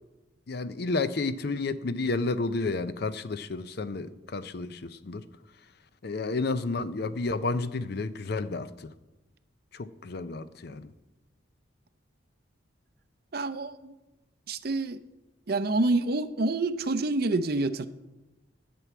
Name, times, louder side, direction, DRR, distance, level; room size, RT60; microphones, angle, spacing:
voice 1, 0.5-5.2 6.0-8.9 9.7-10.9, left 3 dB, 50° left, 13 dB, 0.5 m, -31 dB
voice 2, 13.3-13.9 14.5-15.0 15.5-17.9, right 2 dB, 50° right, 13 dB, 0.5 m, -27 dB
11.5 x 6.1 x 8.3 m, 1.1 s
head